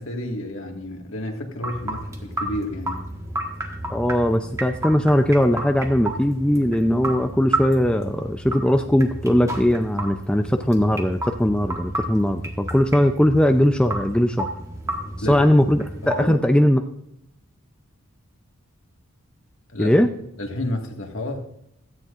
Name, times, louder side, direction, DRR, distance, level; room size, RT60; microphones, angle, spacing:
voice 1, 0.0-3.1 15.2-15.5 16.2-16.4 19.7-20.0 20.4-21.5, left 1 dB, 60° left, 3 dB, 1.9 m, -30 dB
sound 1, 1.6-16.3, right 1 dB, 15° right, 1.4 m, -32 dB
voice 2, 3.9-14.5 15.3-16.8 19.8-20.1, equal, 5° left, 6 dB, 0.4 m, -19 dB
16.5 x 13.5 x 2.5 m, 0.80 s
head